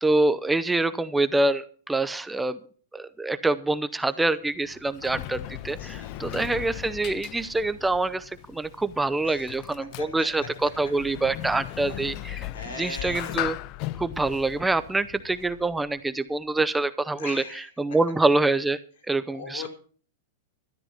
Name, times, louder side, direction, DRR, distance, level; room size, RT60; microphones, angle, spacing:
voice 1, 0.0-2.6 2.9-12.4 12.8-13.5 14.0-17.4 17.8-18.8 19.1-19.6, right 2 dB, 5° right, 13 dB, 0.6 m, -25 dB
Sliding door, 4.5-15.9, left 15 dB, 45° left, 0.5 m, -38 dB
voice 2, 5.5-6.5 9.2-10.3 12.5-13.4 17.2-17.7 19.3-19.7, left 4 dB, 85° left, 4 dB, 5.0 m, -40 dB
13.0 x 9.9 x 5.6 m, 0.43 s
hypercardioid pair, 130°, 0 cm